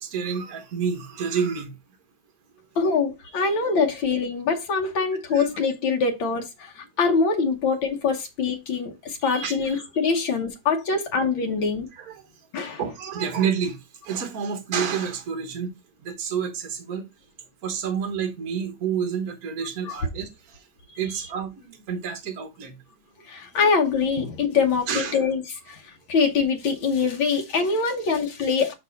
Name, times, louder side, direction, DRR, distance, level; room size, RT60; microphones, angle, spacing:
voice 1, 0.0-1.7 5.3-5.5 9.4-9.5 11.9-12.2 12.8-13.8 14.0-15.7 16.0-17.1 17.6-20.6 21.0-22.8 24.9-25.2, right 7 dB, 50° right, 1.7 m, -29 dB
voice 2, 2.8-11.9 12.5-12.8 19.9-20.0 23.2-28.7, left 5 dB, 90° left, 1.9 m, -24 dB
6.0 x 5.4 x 4.0 m
omnidirectional pair, 2.1 m